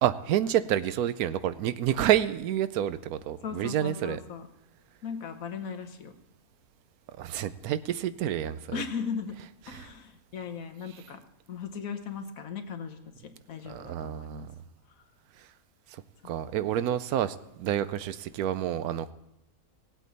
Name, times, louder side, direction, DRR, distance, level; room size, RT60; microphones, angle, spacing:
voice 1, 0.0-4.2 7.1-8.8 9.7-9.9 13.7-14.5 15.9-19.1, right 11 dB, 85° right, 14 dB, 1.1 m, -29 dB
voice 2, 3.4-4.5 5.0-6.1 8.7-9.4 9.7-11.2 11.5-14.5 16.2-16.3, left 6 dB, 70° left, 7 dB, 1.4 m, -37 dB
18.0 x 8.3 x 4.0 m, 0.87 s
omnidirectional pair, 1.5 m